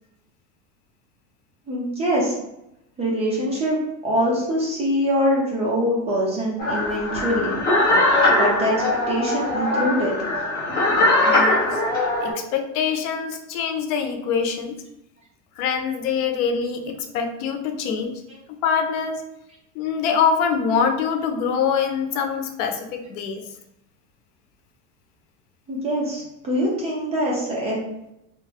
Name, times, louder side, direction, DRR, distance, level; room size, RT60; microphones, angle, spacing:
voice 1, 1.7-2.4 3.0-3.8 4.0-7.6 8.3-10.1 25.7-27.8, equal, 15° right, -5 dB, 0.6 m, -23 dB
sound 1, 6.6-12.3, left 1 dB, 20° left, 0.8 m, -21 dB
voice 2, 11.2-11.8 12.2-14.7 15.6-18.2 18.6-19.2 19.8-23.4, left 6 dB, 85° left, 5 dB, 0.7 m, -24 dB
3.0 x 2.3 x 3.3 m, 0.85 s
supercardioid pair, 160°, 44 cm